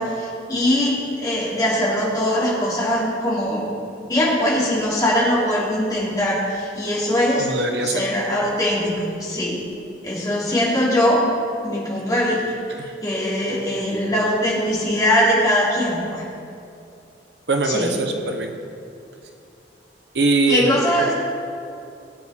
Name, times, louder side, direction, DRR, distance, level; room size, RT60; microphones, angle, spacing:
voice 1, 0.0-3.7 4.1-7.5 7.8-9.6 10.0-11.2 11.6-12.5 12.7-16.2 17.6-17.9 20.5-21.1, left 1 dB, 20° left, -7 dB, 3.2 m, -21 dB
voice 2, 7.4-8.0 12.8-12.9 17.5-18.5 20.1-20.8, right 3 dB, 65° right, 4 dB, 1.0 m, -22 dB
20.5 x 8.6 x 3.6 m, 2.5 s
head